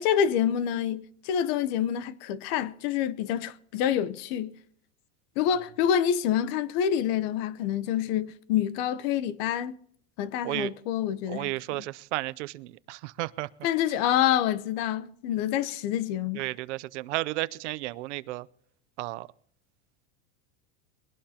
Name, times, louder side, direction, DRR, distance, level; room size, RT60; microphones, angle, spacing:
voice 1, 0.0-4.5 5.4-9.7 10.2-11.8 13.6-16.4, left 9 dB, 60° left, 0.9 m, -27 dB
voice 2, 11.3-13.5 16.4-18.5 19.0-19.3, right 19 dB, 80° right, 0.6 m, -33 dB
22.0 x 17.0 x 2.9 m
supercardioid pair, 140°, 34 cm